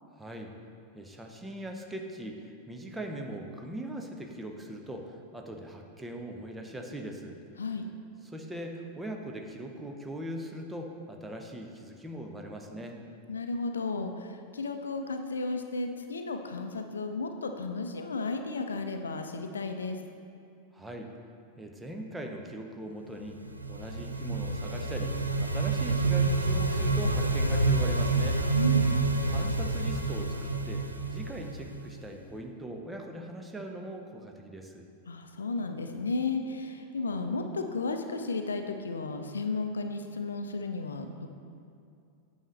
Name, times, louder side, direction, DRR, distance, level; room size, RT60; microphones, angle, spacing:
voice 1, 0.1-0.5 0.9-7.4 8.2-13.0 20.7-21.1 21.6-23.4 23.7-28.4 29.3-34.9, right 1 dB, 10° right, 2 dB, 0.7 m, -40 dB
voice 2, 13.3-20.0 28.5-28.9 35.1-41.3, left 3 dB, 70° left, 6 dB, 0.5 m, -33 dB
sound 1, 23.3-32.1, right 3 dB, 85° right, 0.4 m, -28 dB
8.9 x 6.4 x 3.3 m, 2.5 s
figure-of-eight pair, 90°, 0 cm